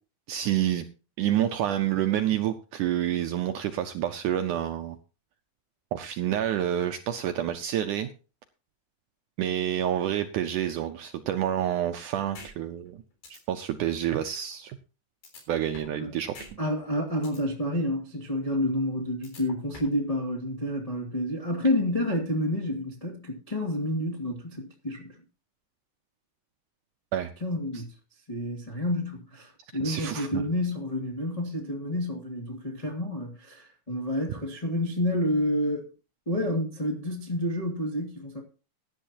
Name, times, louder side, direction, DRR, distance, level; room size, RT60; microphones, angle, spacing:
voice 1, 0.3-0.9 1.2-5.0 5.9-8.1 9.4-13.0 13.3-14.8 15.5-16.3 27.1-27.3 29.8-30.4, right 11 dB, 85° right, 1.8 m, -28 dB
sound 1, 12.3-12.5 12.9-13.0 13.2-13.4 15.2-16.0 16.3-16.5 16.9-17.4 19.2-20.0, left 3 dB, 85° left, 5.6 m, -45 dB
voice 2, 16.6-25.2 27.4-27.9 28.3-35.9 36.2-38.4, left 1 dB, 15° left, 1.3 m, -29 dB
16.5 x 11.0 x 2.8 m
omnidirectional pair, 4.5 m